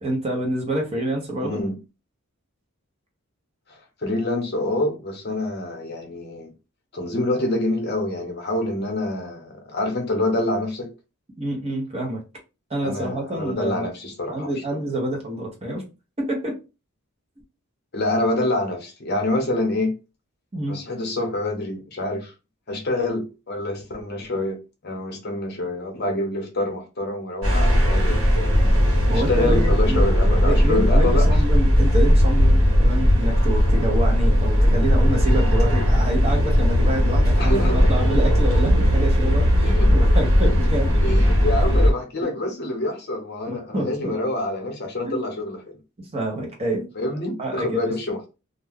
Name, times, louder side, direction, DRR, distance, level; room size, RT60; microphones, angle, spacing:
voice 1, 0.0-1.6 11.4-12.2 12.7-13.9 14.3-15.8 16.2-16.6 20.5-20.8 29.1-30.0 30.4-41.0 42.2-42.3 43.5-44.2 45.0-45.2 46.0-46.9 47.4-47.9, right 1 dB, 25° right, 0.8 m, -27 dB
voice 2, 1.4-1.8 3.7-6.5 6.9-10.9 12.8-14.5 17.9-19.9 20.7-22.3 22.7-28.5 29.1-31.4 37.4-38.1 39.6-39.9 41.0-45.8 47.0-48.3, left 1 dB, 45° left, 0.8 m, -26 dB
sound 1, 27.4-41.9, equal, 70° right, 1.2 m, -18 dB
2.4 x 2.2 x 3.4 m
head